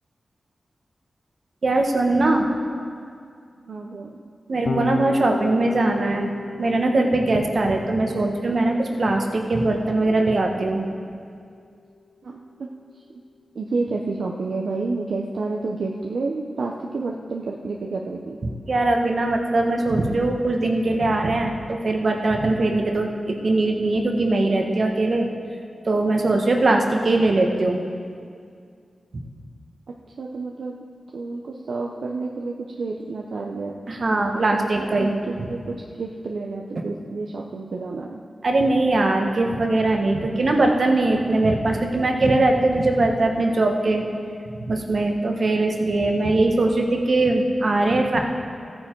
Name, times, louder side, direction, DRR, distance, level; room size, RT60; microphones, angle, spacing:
voice 1, 1.6-2.5 4.5-6.3 6.6-10.9 18.7-25.3 25.9-27.8 33.9-35.1 36.8-36.9 38.4-44.1 44.6-48.2, right 2 dB, 60° right, 2 dB, 1.4 m, -21 dB
voice 2, 3.6-4.2 12.2-12.7 13.1-13.2 13.5-18.4 26.1-26.4 30.2-30.8 31.1-33.7 34.3-38.2 44.1-44.3, right 3 dB, 80° right, -1 dB, 0.7 m, -30 dB
Electric guitar / Bass guitar, 4.7-11.1, left 4 dB, 85° left, 0.9 m, -36 dB
14.5 x 9.5 x 4.6 m, 2.2 s
cardioid pair, 55°, 0 cm